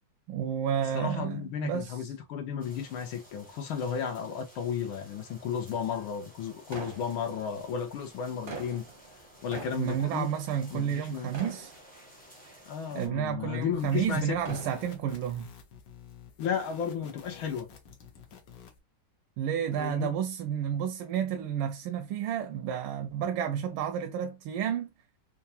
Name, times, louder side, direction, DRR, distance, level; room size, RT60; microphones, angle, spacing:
voice 1, 0.3-2.0 9.8-11.7 12.9-15.5 19.4-24.9, right 9 dB, 80° right, 1.4 m, -31 dB
voice 2, 0.9-8.9 9.4-10.3 10.7-11.3 12.6-14.4 16.4-17.7 19.8-20.1, left 7 dB, 80° left, 1.6 m, -33 dB
sound 1, 2.6-13.1, equal, 10° left, 0.6 m, -55 dB
sound 2, 6.7-7.7 8.2-11.1 11.3-12.4 13.0-13.1 14.2-15.2, right 3 dB, 45° right, 0.6 m, -43 dB
sound 3, 13.7-18.8, left 7 dB, 65° left, 1.5 m, -51 dB
4.5 x 2.3 x 2.6 m
omnidirectional pair, 2.3 m